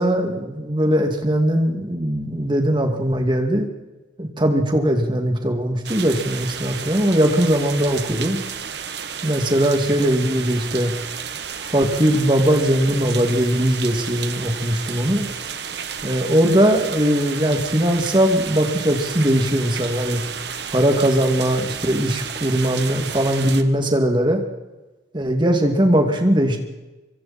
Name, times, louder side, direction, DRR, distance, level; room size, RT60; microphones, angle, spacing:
voice 1, 0.0-3.7 4.2-8.4 9.2-10.9 11.6-15.3 16.0-20.2 20.7-24.4 25.1-26.6, equal, 25° right, 4 dB, 2.6 m, -20 dB
sound 1, 5.8-23.6, right 7 dB, 65° right, 1.4 m, -32 dB
25.5 x 24.0 x 4.5 m, 1.1 s
head